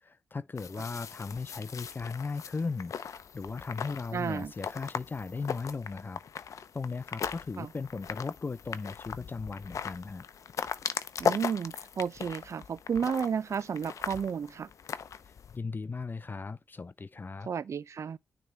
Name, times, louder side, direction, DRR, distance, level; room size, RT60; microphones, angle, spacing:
voice 1, 0.0-10.2 15.3-17.5, left 4 dB, 35° left, 0.6 m, -37 dB
sound 1, 0.6-15.6, left 7 dB, 70° left, 0.7 m, -38 dB
voice 2, 4.1-4.5 7.6-7.7 11.2-14.7 17.5-18.2, right 7 dB, 60° right, 0.5 m, -32 dB
9.6 x 3.4 x 4.1 m
cardioid pair, 65°, 6 cm